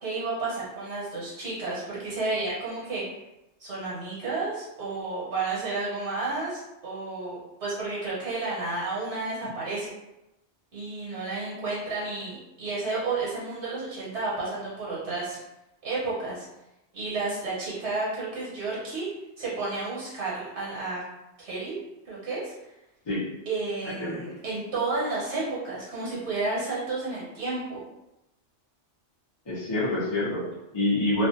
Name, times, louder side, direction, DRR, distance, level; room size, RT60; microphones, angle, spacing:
voice 1, 0.0-3.0 3.6-9.9 10.7-15.4 15.8-16.4 16.9-19.1 19.4-21.0 21.4-21.8 22.1-22.5 23.5-27.8, right 3 dB, 80° right, -7 dB, 1.2 m, -31 dB
voice 2, 29.5-31.3, left 1 dB, 30° left, -8 dB, 0.6 m, -27 dB
2.5 x 2.1 x 2.7 m, 0.93 s
omnidirectional pair, 1.1 m